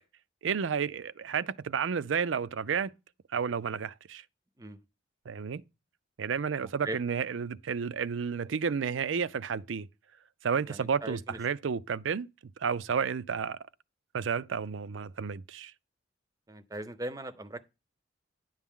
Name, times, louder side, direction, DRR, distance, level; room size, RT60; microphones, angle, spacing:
voice 1, 0.4-2.9 3.3-4.2 5.3-5.6 6.2-9.9 10.4-12.3 12.6-13.6 14.1-15.7, right 6 dB, 85° right, 0.5 m, -31 dB
voice 2, 6.6-7.0 10.7-11.4 16.5-17.7, right 1 dB, 20° right, 0.6 m, -39 dB
10.5 x 7.2 x 3.7 m
head